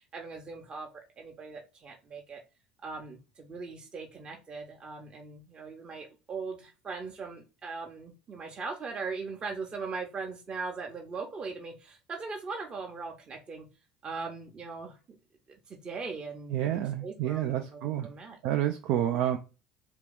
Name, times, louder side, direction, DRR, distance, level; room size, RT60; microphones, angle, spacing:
voice 1, 0.1-0.9 1.2-2.4 2.8-13.7 14.0-15.0 15.7-18.4, right 4 dB, 35° right, 1 dB, 0.9 m, -40 dB
voice 2, 16.5-18.1 18.4-19.4, right 11 dB, 60° right, 4 dB, 0.4 m, -29 dB
3.2 x 2.9 x 3.6 m, 0.30 s
figure-of-eight pair, 65°, 3 cm